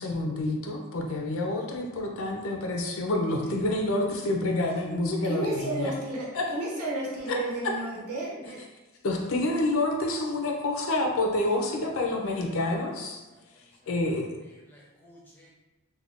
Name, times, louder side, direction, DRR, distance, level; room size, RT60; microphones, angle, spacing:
voice 1, 0.0-5.9 6.3-6.5 7.3-7.4 7.6-7.8 9.0-13.2 13.9-14.3, left 2 dB, 65° left, 1 dB, 0.5 m, -28 dB
voice 2, 5.2-8.6, right 2 dB, 85° right, -4 dB, 0.9 m, -32 dB
voice 3, 12.0-12.7 13.3-13.4 13.8-14.2 14.5-15.5, equal, 10° left, -5 dB, 0.5 m, -56 dB
2.5 x 2.2 x 3.4 m, 1.1 s
head